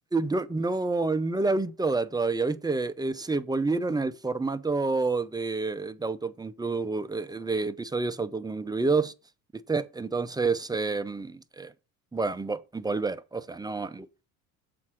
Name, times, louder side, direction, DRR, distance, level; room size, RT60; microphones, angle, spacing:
voice 1, 0.1-9.1 9.7-11.7 12.1-14.1, right 3 dB, 10° right, 0.6 m, -28 dB
7.5 x 4.1 x 6.1 m
supercardioid pair, 85°, 41 cm